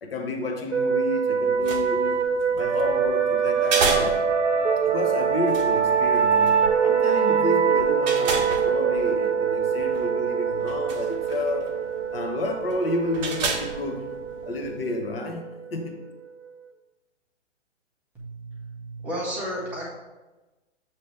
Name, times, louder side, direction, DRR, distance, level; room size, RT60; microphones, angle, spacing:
voice 1, 0.0-4.2 4.8-11.8 12.1-14.1 14.4-16.0, left 2 dB, 50° left, 1.0 m, -31 dB
sound 1, 0.7-16.1, right 7 dB, 70° right, 0.6 m, -24 dB
sound 2, 1.4-14.9, right 4 dB, 40° right, 0.9 m, -34 dB
voice 2, 18.1-19.9, equal, 5° right, 0.4 m, -33 dB
7.3 x 3.1 x 4.6 m
figure-of-eight pair, 125°, 36 cm